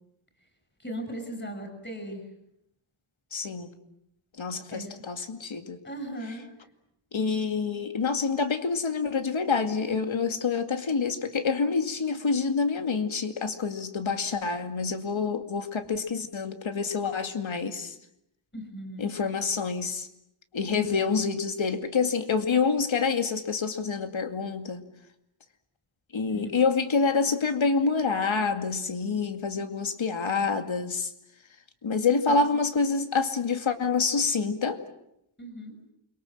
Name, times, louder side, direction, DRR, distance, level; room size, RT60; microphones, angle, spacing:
voice 1, 0.8-2.2 4.7-5.0 5.8-6.5 18.5-19.1 20.7-20.9 26.3-26.5 32.1-32.3 35.4-35.7, right 1 dB, 20° left, 6 dB, 6.6 m, -37 dB
voice 2, 3.3-3.7 4.4-5.8 7.1-17.9 19.0-20.1 20.5-24.8 26.1-31.1 31.8-34.8, left 5 dB, 65° left, 7 dB, 2.4 m, -27 dB
29.0 x 23.5 x 7.7 m, 0.79 s
wide cardioid pair, 120°, 50 cm